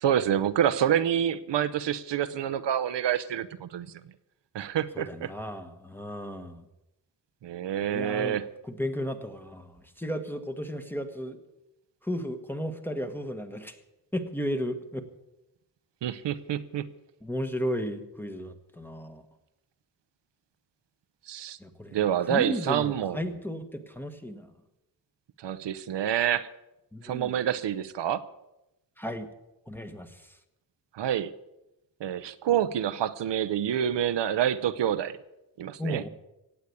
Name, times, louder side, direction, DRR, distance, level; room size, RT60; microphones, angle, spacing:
voice 1, 0.0-3.9 4.5-5.3 7.4-8.5 16.0-16.9 21.3-21.6 21.9-23.2 25.4-26.5 27.0-28.2 30.9-31.3 32.0-35.2 35.6-36.0, right 10 dB, 85° right, 13 dB, 0.8 m, -27 dB
voice 2, 4.9-6.6 7.9-11.4 12.0-13.8 14.1-15.0 17.2-19.2 21.6-24.5 26.9-27.4 29.0-29.3 29.7-30.3 35.8-36.1, equal, 5° left, 8 dB, 1.2 m, -34 dB
17.0 x 8.2 x 8.4 m, 0.94 s
wide cardioid pair, 150°, 42 cm